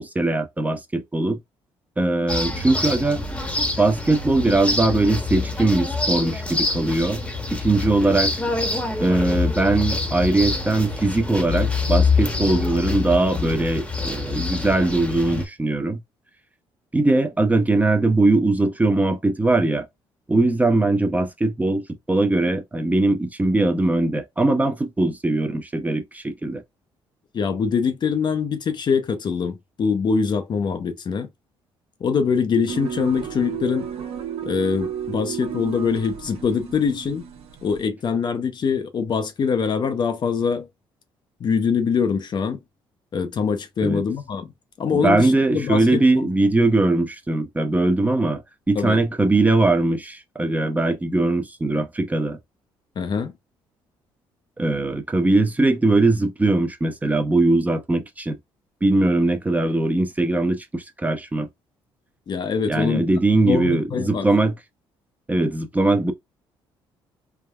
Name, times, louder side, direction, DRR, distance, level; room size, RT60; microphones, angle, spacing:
voice 1, 0.0-1.4 2.0-3.2 3.8-7.2 7.6-8.3 9.0-16.0 16.9-19.9 20.3-26.6 43.8-44.0 44.9-48.4 48.7-52.4 54.6-58.4 58.8-61.5 62.7-64.5 65.3-66.1, right 2 dB, 15° right, 0.6 m, -20 dB
sound 1, 2.3-15.5, left 3 dB, 10° left, 0.9 m, -25 dB
voice 2, 27.3-31.3 32.0-33.9 34.4-37.2 37.6-40.7 41.4-42.6 43.1-44.5 44.8-46.0 48.8-49.0 53.0-53.3 62.3-63.1 63.4-64.3, left 6 dB, 45° left, 0.6 m, -23 dB
sound 2, 32.7-37.9, right 8 dB, 70° right, 0.8 m, -33 dB
3.5 x 2.1 x 2.3 m
supercardioid pair, 75°, 10 cm